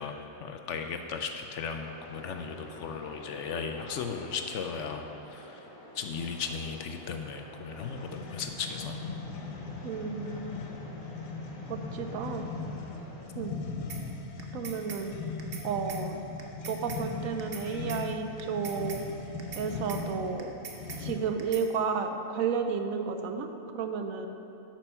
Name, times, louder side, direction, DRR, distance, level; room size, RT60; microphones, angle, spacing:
voice 1, 0.0-5.7 5.9-9.0, left 5 dB, 65° left, 5 dB, 0.8 m, -36 dB
sound 1, 1.7-13.2, left 1 dB, 35° left, 2.0 m, -49 dB
sound 2, 7.7-21.5, left 4 dB, 80° left, 1.1 m, -39 dB
voice 2, 9.8-10.6 11.7-12.5 13.3-13.6 14.5-15.1 15.6-16.2 16.7-19.0 19.5-20.6 21.0-23.5 23.7-24.3, right 6 dB, 75° right, 6 dB, 1.0 m, -32 dB
sound 3, 13.9-14.0 14.4-15.0 15.4-15.6 15.9-16.0 16.4-17.0 17.4-17.6 17.9-18.0 18.4-19.0 19.4-19.6 19.9-20.0 20.4-21.0 21.4-21.6, right 5 dB, 50° right, 0.9 m, -42 dB
8.8 x 6.1 x 5.5 m, 3.0 s
omnidirectional pair, 1.5 m